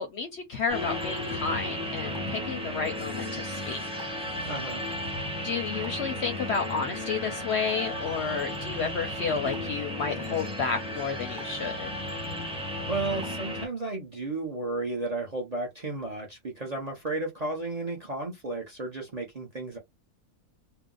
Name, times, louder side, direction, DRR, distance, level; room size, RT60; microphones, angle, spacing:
voice 1, 0.0-4.1 5.4-11.9, left 5 dB, 60° left, 0.7 m, -31 dB
sound 1, 0.7-13.7, left 1 dB, 5° right, 0.8 m, -34 dB
voice 2, 4.5-4.8 12.9-19.8, right 2 dB, 40° right, 0.6 m, -33 dB
2.7 x 2.1 x 3.7 m
omnidirectional pair, 1.6 m